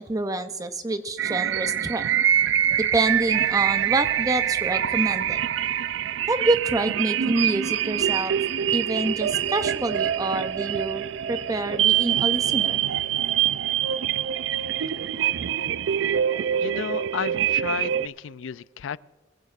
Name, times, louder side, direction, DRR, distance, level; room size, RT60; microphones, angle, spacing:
voice 1, 0.0-2.2 2.8-5.4 6.3-8.3 8.7-12.8, right 2 dB, 20° right, 9 dB, 0.6 m, -27 dB
sound 1, 1.2-18.1, right 10 dB, 70° right, 0.3 m, -25 dB
sound 2, 2.2-15.4, right 1 dB, 45° right, 1.5 m, -50 dB
voice 2, 16.6-19.0, left 8 dB, 80° left, 18 dB, 0.4 m, -32 dB
22.0 x 16.0 x 2.5 m, 1.3 s
head